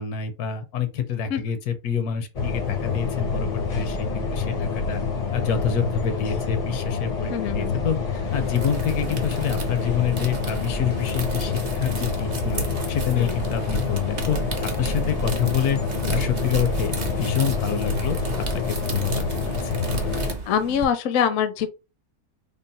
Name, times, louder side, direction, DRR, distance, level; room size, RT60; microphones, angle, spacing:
voice 1, 0.0-5.0 5.3-8.0 8.3-15.8 16.1-19.8, left 8 dB, 85° left, 1.3 m, -27 dB
sound 1, 2.3-20.3, left 4 dB, 45° left, 0.5 m, -27 dB
voice 2, 7.3-7.7 13.2-13.3 20.5-21.7, left 8 dB, 65° left, 0.9 m, -24 dB
sound 2, 8.2-20.8, right 3 dB, 40° right, 0.6 m, -33 dB
3.7 x 2.1 x 4.0 m
omnidirectional pair, 1.6 m